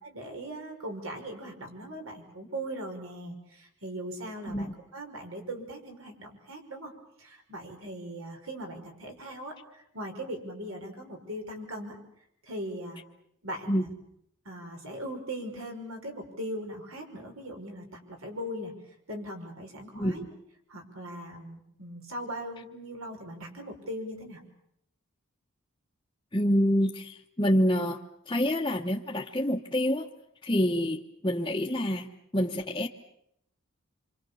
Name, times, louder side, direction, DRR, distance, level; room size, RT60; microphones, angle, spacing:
voice 1, 0.0-6.9 7.2-12.0 12.4-13.0 13.4-13.9 14.5-18.7 19.1-20.2 20.7-24.4, right 1 dB, 85° right, 3 dB, 5.6 m, -39 dB
voice 2, 19.9-20.3 26.3-28.0 28.3-30.1 30.4-32.1 32.3-32.9, equal, 20° left, -2 dB, 1.0 m, -27 dB
27.5 x 25.0 x 7.1 m, 0.76 s
head